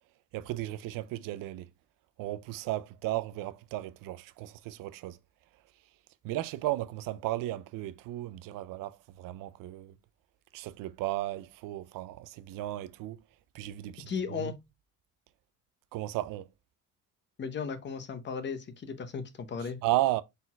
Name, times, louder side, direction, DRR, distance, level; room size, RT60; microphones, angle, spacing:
voice 1, 0.3-1.7 2.2-5.2 6.2-9.9 10.5-13.2 13.5-14.5 15.9-16.4 19.8-20.2, right 16 dB, 75° right, 0.5 m, -34 dB
voice 2, 14.1-14.5 17.4-19.8, left 6 dB, 35° left, 0.8 m, -36 dB
4.2 x 4.0 x 2.2 m
cardioid pair, 120°, 33 cm